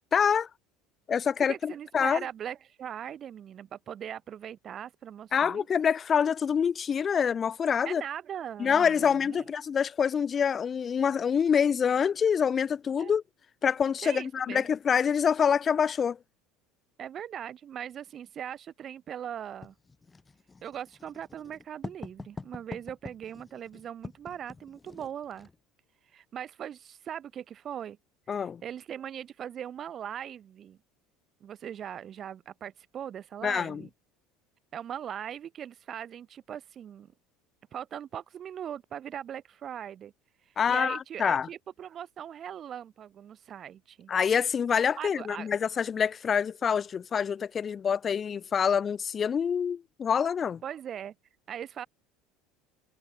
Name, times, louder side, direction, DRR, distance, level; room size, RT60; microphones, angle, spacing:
voice 1, 0.1-0.5 1.1-2.2 5.3-8.0 8.6-13.2 13.6-16.2 28.3-28.6 33.4-33.8 40.6-41.5 44.1-50.6, left 7 dB, 35° left, 0.6 m, -26 dB
voice 2, 1.5-5.7 7.8-9.4 13.0-13.1 14.0-14.7 17.0-19.7 20.6-25.5 26.1-28.0 28.3-30.8 31.4-33.9 34.7-37.1 37.7-40.1 40.7-44.1 45.0-45.5 50.6-51.1 51.5-51.9, right 9 dB, 45° right, 1.4 m, -40 dB
Writing, 19.6-25.6, left 4 dB, 20° left, 1.5 m, -45 dB
hypercardioid pair, 80°, 0 cm